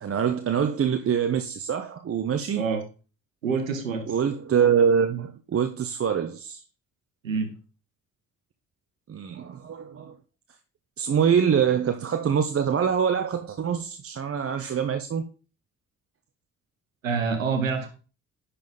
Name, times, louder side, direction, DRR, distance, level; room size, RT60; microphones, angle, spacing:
voice 1, 0.0-2.6 4.1-6.6 9.1-10.1 11.0-15.2, right 7 dB, 35° right, 0.9 m, -24 dB
voice 2, 3.4-4.1 7.2-7.5 17.0-17.9, right 5 dB, 85° right, 1.2 m, -26 dB
10.5 x 4.3 x 5.2 m
figure-of-eight pair, 45°, 39 cm